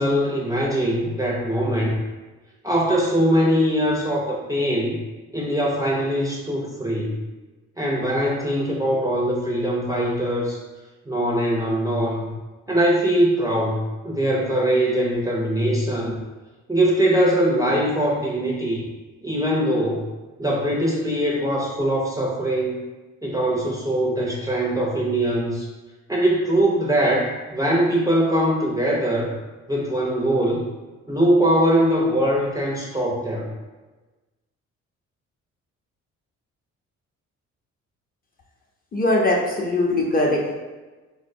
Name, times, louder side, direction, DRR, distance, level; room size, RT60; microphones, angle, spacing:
voice 1, 0.0-2.0 2.6-5.0 5.3-7.2 7.8-10.6 11.1-12.3 12.7-16.2 16.7-18.9 19.2-20.1 20.4-22.8 23.2-25.7 26.1-29.3 29.7-30.7 31.1-33.5, right 1 dB, 10° right, -4 dB, 0.5 m, -22 dB
voice 2, 38.9-40.5, left 2 dB, 30° left, -2 dB, 0.7 m, -21 dB
4.0 x 2.1 x 2.6 m, 1.2 s
cardioid pair, 90°, 30 cm